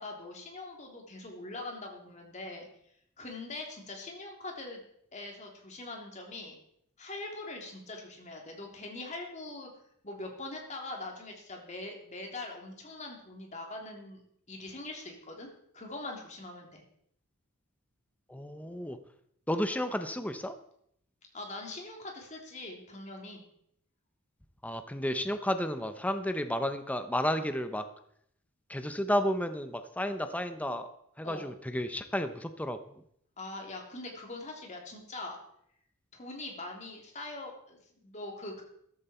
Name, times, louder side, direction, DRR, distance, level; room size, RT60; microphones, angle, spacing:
voice 1, 0.0-2.7 3.2-4.8 5.1-6.5 7.0-9.7 10.0-14.2 14.5-15.5 15.7-16.8 21.3-23.4 31.2-31.5 33.4-35.4 36.1-38.6, left 2 dB, 35° left, 1 dB, 3.2 m, -42 dB
voice 2, 18.3-19.0 19.5-20.5 24.6-27.8 28.7-30.9 31.2-32.8, equal, 5° left, 9 dB, 0.8 m, -32 dB
14.0 x 13.0 x 4.4 m, 0.71 s
head